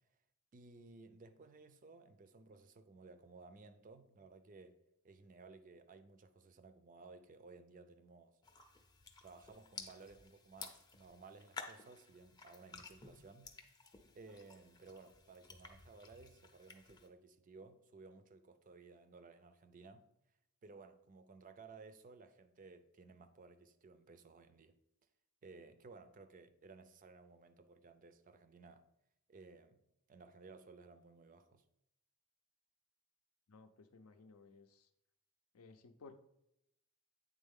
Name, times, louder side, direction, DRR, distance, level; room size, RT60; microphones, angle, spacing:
voice 1, 0.5-4.8 5.0-8.4 9.2-13.5 14.1-20.1 20.6-24.7 25.4-28.8 29.3-29.8 30.1-31.6, right 3 dB, 35° right, 0.4 m, -58 dB
sound 1, 8.4-17.1, left 4 dB, 20° left, 0.5 m, -54 dB
voice 2, 33.5-34.9 35.5-36.2, left 4 dB, 80° left, 0.5 m, -58 dB
8.6 x 3.6 x 3.6 m
head